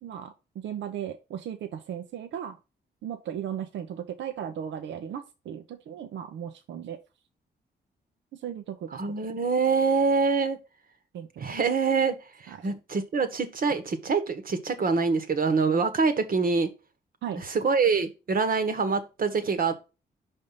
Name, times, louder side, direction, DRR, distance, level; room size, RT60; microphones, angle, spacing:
voice 1, 0.0-2.6 3.0-7.0 8.3-9.3 11.1-11.6 12.5-12.7 17.2-17.4, right 9 dB, 80° right, 8 dB, 0.7 m, -36 dB
voice 2, 9.0-10.6 11.4-12.2 12.4-16.7 17.5-19.8, right 4 dB, 50° right, 9 dB, 1.2 m, -25 dB
5.3 x 3.6 x 5.5 m, 0.29 s
cardioid pair, 75°, 19 cm